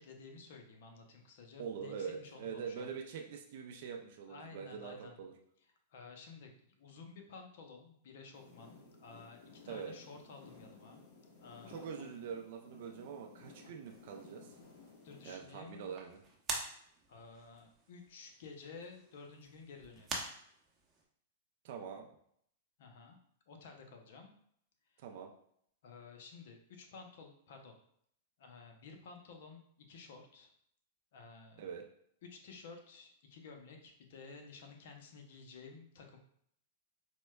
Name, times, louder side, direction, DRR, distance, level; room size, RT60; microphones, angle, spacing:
voice 1, 0.0-3.0 4.3-5.2 5.9-11.1 11.4-12.1 15.0-16.0 17.1-20.2 22.8-23.2 23.5-24.3 24.9-25.0 25.8-27.7 28.4-30.5 31.1-31.7 32.2-36.2, left 4 dB, 65° left, 3 dB, 0.6 m, -53 dB
voice 2, 1.6-5.3 9.7-9.9 11.7-14.5 15.2-16.2 21.6-22.1 25.0-25.3 31.6-31.8, right 6 dB, 60° right, 2 dB, 0.4 m, -44 dB
sound 1, 8.3-15.3, left 3 dB, 50° left, 1.1 m, -57 dB
sound 2, 13.8-21.0, right 3 dB, 25° right, 0.7 m, -47 dB
4.3 x 2.1 x 2.2 m, 0.66 s
hypercardioid pair, 115°, 0 cm